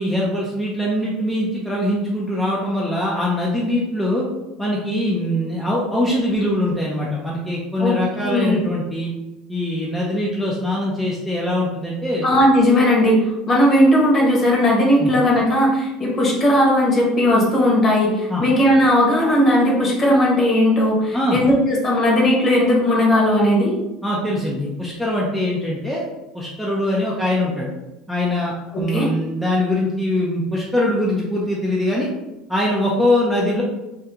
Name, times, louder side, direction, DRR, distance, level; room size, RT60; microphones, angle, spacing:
voice 1, 0.0-4.3 4.6-9.1 9.5-12.2 15.0-15.1 18.3-18.4 21.1-21.4 24.0-26.0 26.3-27.7 28.1-32.1 32.5-33.6, left 1 dB, 5° left, -5 dB, 0.5 m, -22 dB
voice 2, 8.2-8.6 12.2-13.2 13.5-23.7 28.7-29.1, left 1 dB, 35° left, -3 dB, 1.1 m, -17 dB
2.9 x 2.3 x 3.5 m, 1.0 s
supercardioid pair, 120°, 0 cm